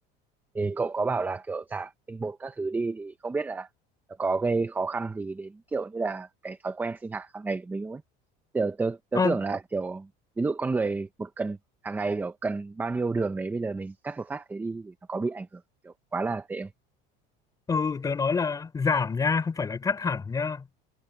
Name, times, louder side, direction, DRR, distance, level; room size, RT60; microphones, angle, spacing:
voice 1, 0.5-3.7 4.2-8.0 8.5-10.1 10.4-11.6 11.8-16.7, right 3 dB, 10° right, 0.7 m, -30 dB
voice 2, 17.7-20.7, left 5 dB, 15° left, 4.7 m, -26 dB
cardioid pair, 160°, 21 cm